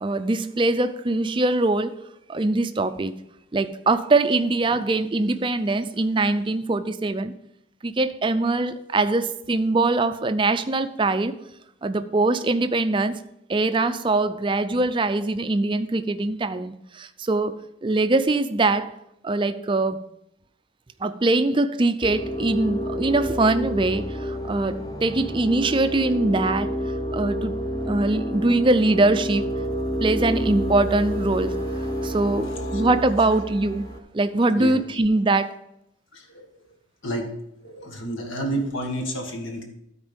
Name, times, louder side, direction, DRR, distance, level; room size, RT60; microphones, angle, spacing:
voice 1, 0.0-2.0 2.3-3.1 3.5-7.3 7.8-11.4 11.8-13.2 13.5-18.9 19.2-20.0 21.0-26.8 27.1-27.6 27.9-29.6 30.0-33.9 34.1-35.6, right 2 dB, 25° right, 11 dB, 0.4 m, -22 dB
sound 1, 22.0-34.0, equal, 20° left, 0.9 m, -29 dB
voice 2, 36.1-36.5 37.0-37.3 37.6-39.6, right 1 dB, 75° left, 3 dB, 1.8 m, -30 dB
13.0 x 4.5 x 5.2 m, 0.80 s
head